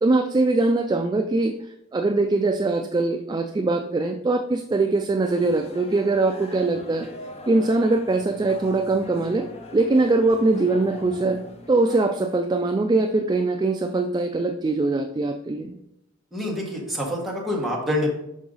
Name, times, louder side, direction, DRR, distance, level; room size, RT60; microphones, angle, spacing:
voice 1, 0.0-1.5 1.9-7.1 7.5-9.5 9.7-11.4 11.7-15.8, right 2 dB, 20° right, 5 dB, 0.3 m, -22 dB
sound 1, 5.2-12.1, left 1 dB, 30° left, 0.7 m, -42 dB
voice 2, 16.3-18.1, left 1 dB, ahead, -3 dB, 1.4 m, -26 dB
6.2 x 4.7 x 3.9 m, 0.82 s
head